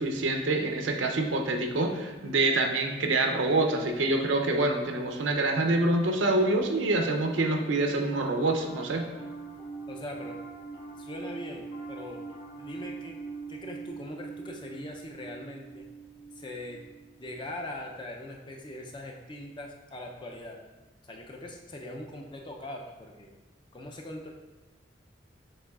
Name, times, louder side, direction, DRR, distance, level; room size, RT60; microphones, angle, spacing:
voice 1, 0.0-9.1, right 2 dB, 85° right, 3 dB, 0.6 m, -26 dB
Piano, 6.5-17.9, right 4 dB, 90° left, 1.0 m, -43 dB
voice 2, 9.9-10.4 11.0-12.2 12.5-13.2 13.5-15.9 16.4-16.8 17.2-20.6 21.1-23.3 23.7-24.3, left 1 dB, 25° left, 1 dB, 0.4 m, -41 dB
7.2 x 3.0 x 2.3 m, 1.2 s
head